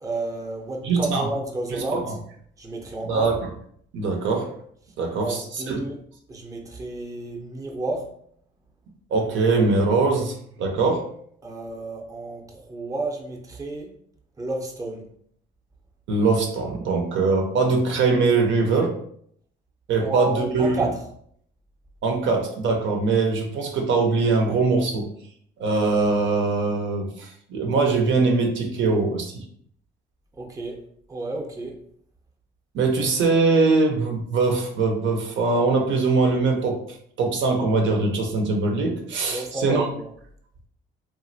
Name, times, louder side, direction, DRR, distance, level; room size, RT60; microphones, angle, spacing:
voice 1, 0.0-2.2 2.6-3.3 5.2-6.0 6.3-8.1 11.4-13.9 14.4-15.0 20.0-21.0 30.4-30.8 31.1-31.7 39.3-40.1, right 2 dB, 15° right, 0 dB, 0.6 m, -31 dB
voice 2, 0.8-1.3 1.9-2.1 3.1-3.4 3.9-4.5 5.0-5.8 9.1-11.0 16.1-19.0 19.9-20.9 22.0-25.1 25.6-29.4 32.7-36.8 37.2-39.9, right 3 dB, 70° right, 2 dB, 0.7 m, -22 dB
3.0 x 2.5 x 2.6 m, 0.65 s
cardioid pair, 90°, 20 cm